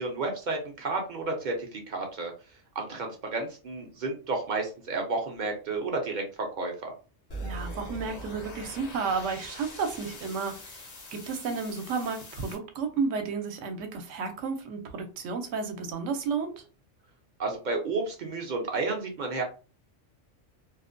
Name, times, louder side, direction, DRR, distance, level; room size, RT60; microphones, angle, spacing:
voice 1, 0.0-2.3 2.8-6.2 6.6-6.9 17.4-19.4, right 3 dB, 55° right, 0.5 m, -31 dB
sound 1, 7.3-12.5, equal, 45° left, 0.6 m, -42 dB
voice 2, 7.4-16.6, right 5 dB, 80° right, 0.9 m, -32 dB
2.4 x 2.1 x 2.5 m
omnidirectional pair, 1.3 m